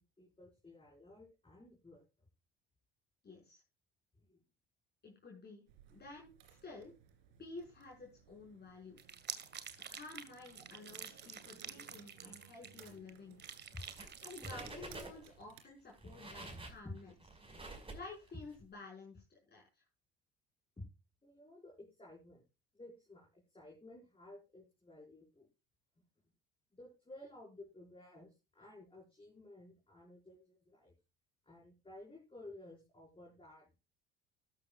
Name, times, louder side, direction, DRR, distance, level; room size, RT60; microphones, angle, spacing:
voice 1, 0.0-2.3 4.2-4.4 13.7-13.8 14.4-14.5 15.6-15.7 16.0-16.1 16.8-17.0 20.8-20.9 21.2-22.4 22.7-25.5 26.7-30.9 31.4-33.8, left 2 dB, 15° left, -2 dB, 5.3 m, -54 dB
voice 2, 3.2-3.6 5.0-5.6 5.9-6.9 7.4-9.0 9.9-13.4 14.2-17.1 17.9-19.6, left 3 dB, 35° left, -2 dB, 5.6 m, -52 dB
sound 1, 5.7-15.6, right 9 dB, 70° right, 2.9 m, -61 dB
sound 2, 9.0-13.1 13.4-14.5, right 7 dB, 35° right, 2.0 m, -48 dB
sound 3, 13.8-14.2 14.4-15.4 15.9-18.6, right 2 dB, 15° right, 5.4 m, -49 dB
13.5 x 13.0 x 2.4 m, 0.28 s
figure-of-eight pair, 60°, 31 cm